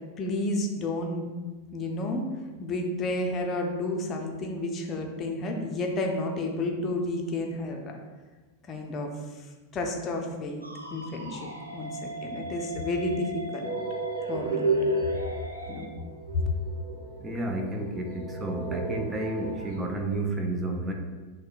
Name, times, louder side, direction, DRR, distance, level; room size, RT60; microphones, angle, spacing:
voice 1, 0.2-1.3 1.7-2.3 2.6-8.0 8.7-9.5 9.7-10.6 10.9-13.7 14.3-14.6 15.7-15.9, left 2 dB, 25° left, 2 dB, 0.6 m, -31 dB
sound 1, 10.6-15.9, right 2 dB, 85° right, 0.4 m, -39 dB
sound 2, 13.6-19.8, right 2 dB, 50° right, 0.9 m, -32 dB
voice 2, 17.2-20.9, right 2 dB, 15° right, 2 dB, 0.5 m, -31 dB
6.2 x 2.1 x 2.5 m, 1.3 s
figure-of-eight pair, 90°, 0 cm